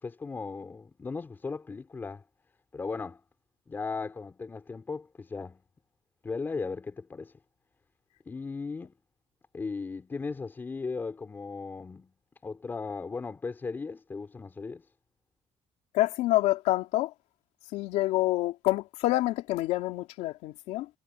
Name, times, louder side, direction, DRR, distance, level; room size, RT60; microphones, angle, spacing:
voice 1, 0.0-2.2 2.7-3.2 3.7-5.6 6.2-7.3 8.3-8.9 9.5-12.1 12.4-14.9, left 4 dB, 20° left, 4.4 m, -37 dB
voice 2, 15.9-17.1 17.7-20.9, left 17 dB, 85° left, 2.9 m, -27 dB
cardioid pair, 170°, 11 cm